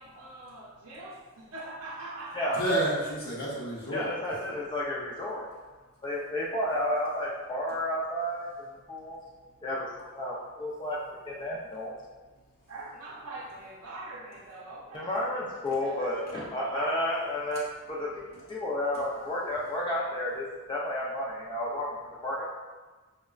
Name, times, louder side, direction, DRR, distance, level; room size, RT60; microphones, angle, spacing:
voice 1, 0.0-2.6 12.7-15.1 15.8-16.4 16.7-16.9, right 2 dB, 70° right, -6 dB, 0.5 m, -42 dB
voice 2, 2.5-4.1 9.1-9.6 12.4-12.7 16.3-16.4 18.2-18.5, right 1 dB, 45° left, -7 dB, 0.8 m, -32 dB
voice 3, 3.9-5.4 6.0-9.2 9.6-9.9 10.1-11.0 11.2-11.9 14.9-18.2 18.5-22.0 22.2-22.5, left 1 dB, 20° left, -6 dB, 0.5 m, -31 dB
4.9 x 2.1 x 2.3 m, 1.3 s
head